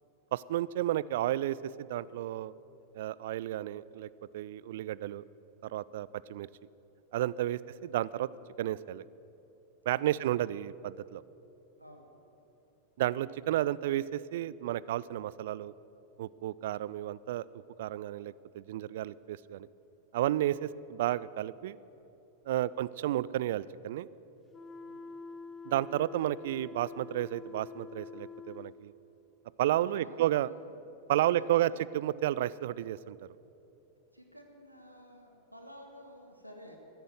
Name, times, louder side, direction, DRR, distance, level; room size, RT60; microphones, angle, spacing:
voice 1, 0.3-2.5 2.9-4.1 4.3-5.2 5.6-6.5 7.1-8.3 8.6-9.0 9.9-11.2 13.0-15.7 16.2-17.5 17.8-19.7 20.1-21.8 22.5-24.1 25.7-28.9 29.6-30.5 31.1-33.2, right 13 dB, 55° right, 20 dB, 0.3 m, -32 dB
voice 2, 11.8-12.1 20.5-20.7 22.5-22.6 24.8-25.1 29.8-30.2 30.5-30.8 31.3-31.8 34.1-36.8, equal, 90° right, 3 dB, 1.4 m, -52 dB
sound 1, 24.5-28.8, left 5 dB, 15° left, 0.6 m, -46 dB
14.5 x 10.5 x 7.8 m, 3.0 s
figure-of-eight pair, 90°, 0 cm